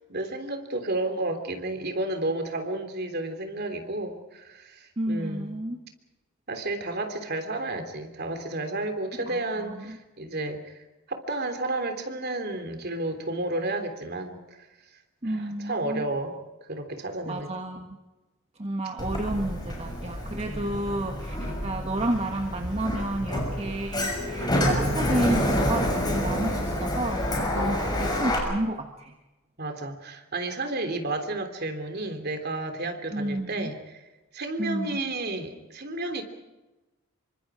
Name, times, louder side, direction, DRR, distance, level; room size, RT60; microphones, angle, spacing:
voice 1, 0.1-5.5 6.5-14.7 15.2-16.4 16.7-17.6 20.4-20.8 21.4-21.6 24.4-24.7 27.5-27.9 29.6-34.0 34.3-36.2, right 2 dB, 50° right, 6 dB, 3.3 m, -32 dB
voice 2, 5.0-5.8 9.2-10.0 15.2-16.1 17.3-18.0 18.6-29.1 33.1-33.7 34.6-35.0, right 1 dB, 30° right, 3 dB, 1.6 m, -31 dB
Sliding door, 19.0-28.4, left 1 dB, 20° left, 6.4 m, -28 dB
27.5 x 25.0 x 5.0 m, 1.1 s
head